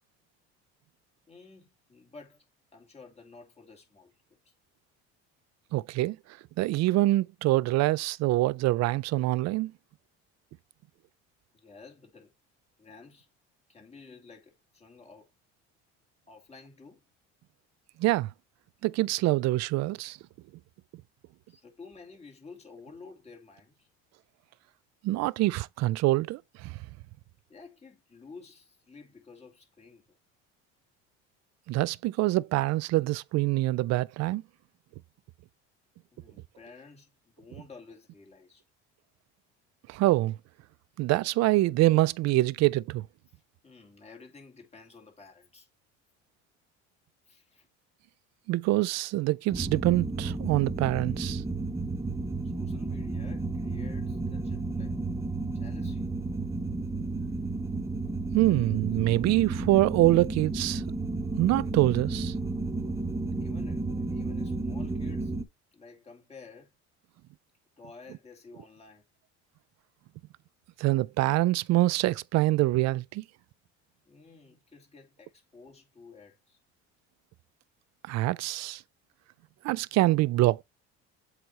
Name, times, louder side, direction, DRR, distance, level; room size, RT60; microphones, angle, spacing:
voice 1, 1.3-2.5 2.7-4.1 4.4-4.5 11.5-12.3 12.8-13.3 13.7-15.3 16.3-17.0 21.5-23.9 27.5-30.2 36.1-38.6 43.3-45.7 47.3-47.7 52.4-54.9 55.5-56.1 63.3-65.4 65.7-66.7 67.8-69.0 74.1-76.6, left 4 dB, 20° left, 2.8 m, -52 dB
voice 2, 5.7-6.2 6.6-9.7 18.0-18.3 18.8-20.2 25.0-26.8 31.7-34.4 39.9-40.4 41.0-43.0 48.5-51.4 58.3-60.8 61.3-62.3 70.8-73.2 78.1-78.8 79.6-80.6, right 18 dB, 55° right, 0.4 m, -25 dB
sound 1, 49.5-65.4, right 3 dB, 10° right, 0.7 m, -32 dB
8.0 x 3.1 x 4.1 m
supercardioid pair, 90°, 32 cm